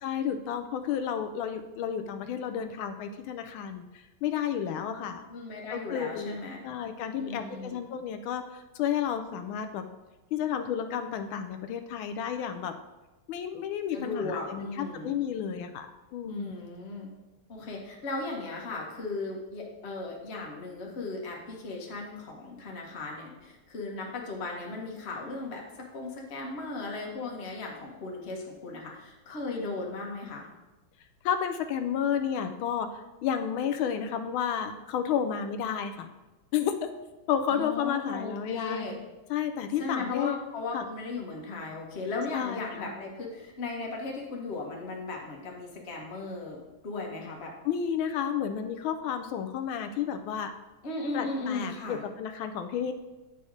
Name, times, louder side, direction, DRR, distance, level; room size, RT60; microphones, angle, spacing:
voice 1, 0.0-5.2 5.7-9.8 10.3-12.7 13.3-16.6 31.2-36.1 36.5-36.9 37.3-38.9 39.3-40.4 40.7-40.8 42.3-43.0 47.6-50.5 51.1-52.9, left 8 dB, 85° left, 7 dB, 1.4 m, -31 dB
voice 2, 5.3-6.6 7.2-7.8 13.9-15.1 16.2-17.1 17.5-30.5 37.5-39.0 39.8-46.6 46.8-47.5 50.8-52.0, left 3 dB, 35° left, -1 dB, 1.3 m, -36 dB
8.3 x 4.2 x 4.8 m, 1.1 s
omnidirectional pair, 2.2 m